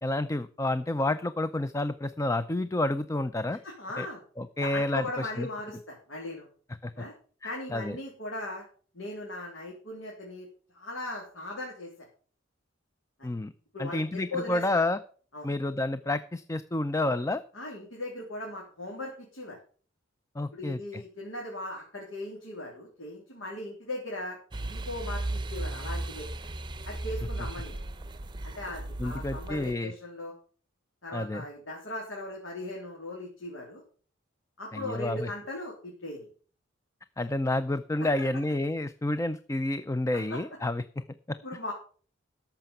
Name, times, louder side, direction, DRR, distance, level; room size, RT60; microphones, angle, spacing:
voice 1, 0.0-3.6 4.0-4.1 4.4-5.5 6.8-6.9 7.7-8.0 13.2-13.5 13.8-15.0 15.4-17.4 20.4-21.0 29.0-29.9 31.1-31.5 34.7-35.3 37.2-41.4, left 2 dB, 15° left, 12 dB, 0.4 m, -29 dB
voice 2, 3.6-4.2 4.6-6.5 7.0-7.1 7.4-8.6 8.9-10.5 10.7-11.9 13.2-13.3 13.7-14.8 15.3-15.5 17.5-19.6 20.5-24.4 24.7-26.3 26.8-27.8 28.4-30.3 31.0-33.8 34.6-36.3 37.2-37.3 38.0-38.1 40.1-40.4 41.4-41.7, left 2 dB, 85° left, -3 dB, 3.5 m, -38 dB
sound 1, 24.5-29.7, right 2 dB, 25° right, 0.7 m, -36 dB
13.5 x 5.8 x 6.9 m, 0.43 s
head